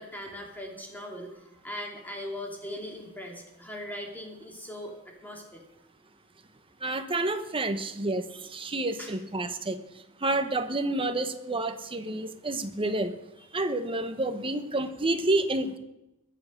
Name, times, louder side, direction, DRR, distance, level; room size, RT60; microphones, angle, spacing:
voice 1, 0.0-5.6 9.0-9.2, left 1 dB, 10° left, 0 dB, 2.8 m, -40 dB
voice 2, 6.8-9.8 10.2-13.1 13.5-15.8, right 2 dB, 25° right, 8 dB, 1.0 m, -29 dB
21.5 x 7.5 x 6.6 m, 0.93 s
head